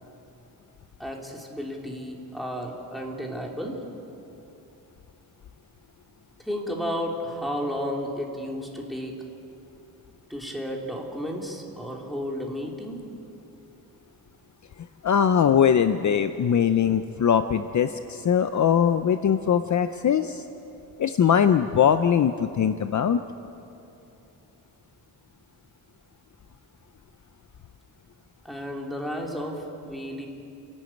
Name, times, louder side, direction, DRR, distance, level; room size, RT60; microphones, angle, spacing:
voice 1, 1.0-3.8 6.4-9.1 10.3-13.0 28.4-30.3, equal, ahead, -1 dB, 3.2 m, -32 dB
voice 2, 15.0-20.4 21.0-23.2, left 8 dB, 50° left, 10 dB, 0.7 m, -21 dB
29.5 x 12.0 x 9.1 m, 2.8 s
wide cardioid pair, 120°, 38 cm